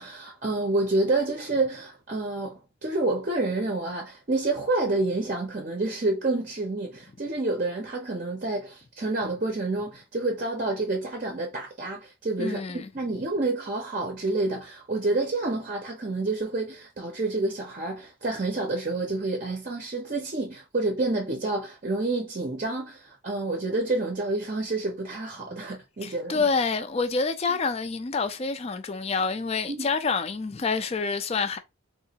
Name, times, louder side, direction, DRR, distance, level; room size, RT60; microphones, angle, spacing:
voice 1, 0.0-26.5 27.5-27.6 29.7-29.9, right 2 dB, 40° right, 0.6 m, -28 dB
voice 2, 12.4-12.9 26.0-31.6, left 4 dB, 30° left, 0.4 m, -27 dB
3.6 x 2.5 x 2.8 m
head